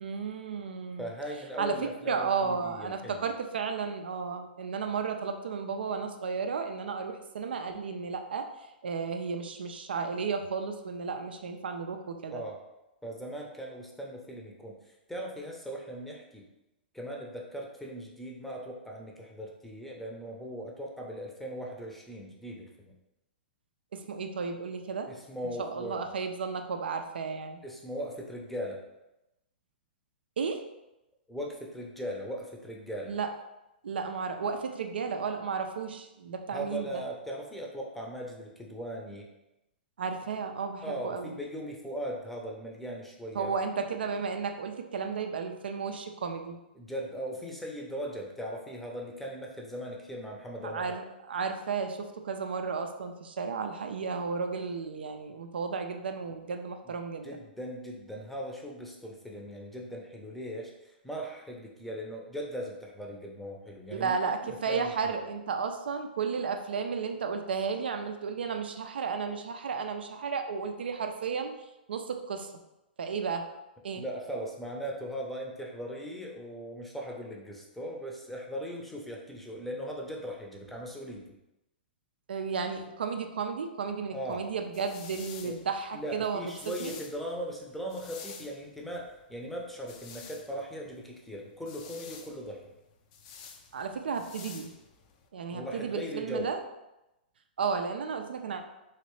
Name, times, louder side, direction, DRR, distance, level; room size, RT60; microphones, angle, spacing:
voice 1, 0.0-1.1 1.6-1.7 2.0-8.5 8.8-12.4 23.9-25.1 25.6-27.6 30.4-30.6 33.1-33.3 33.8-37.0 40.0-41.3 43.4-46.6 50.6-57.3 63.9-71.5 71.9-72.5 73.0-73.5 73.8-74.0 82.3-86.4 86.8-87.0 93.7-94.7 95.3-96.6 97.6-98.6, right 5 dB, 75° right, 5 dB, 0.4 m, -33 dB
voice 2, 1.0-3.3 12.3-12.6 13.0-16.4 16.9-22.9 25.1-26.0 27.6-28.8 31.3-33.2 36.5-39.3 40.8-43.6 46.7-51.0 56.8-56.9 57.2-64.2 64.4-65.1 73.9-81.3 84.1-84.5 85.4-85.6 85.9-92.7 95.5-96.5, equal, 5° left, -1 dB, 0.6 m, -39 dB
sound 1, 84.3-95.3, left 6 dB, 45° left, 0.4 m, -50 dB
3.2 x 2.9 x 3.1 m, 0.93 s
hypercardioid pair, 120°, 6 cm